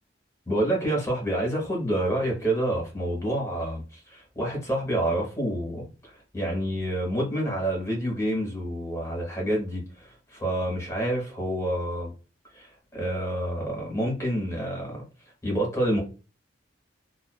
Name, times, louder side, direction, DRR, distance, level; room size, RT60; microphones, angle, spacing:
voice 1, 0.5-12.1 12.5-15.1 15.4-16.0, right 1 dB, 15° left, 1.0 m, -28 dB
2.4 x 2.3 x 2.2 m
head